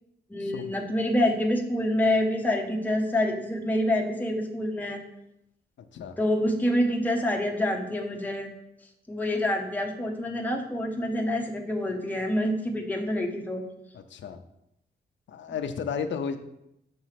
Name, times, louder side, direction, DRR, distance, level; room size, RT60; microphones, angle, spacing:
voice 1, 0.3-5.0 6.2-8.5 9.1-13.6, left 1 dB, 10° left, 1 dB, 0.7 m, -27 dB
voice 2, 13.9-14.4 15.3-16.4, left 6 dB, 80° left, 7 dB, 0.5 m, -33 dB
6.7 x 3.1 x 5.7 m, 0.82 s
wide cardioid pair, 165°, 19 cm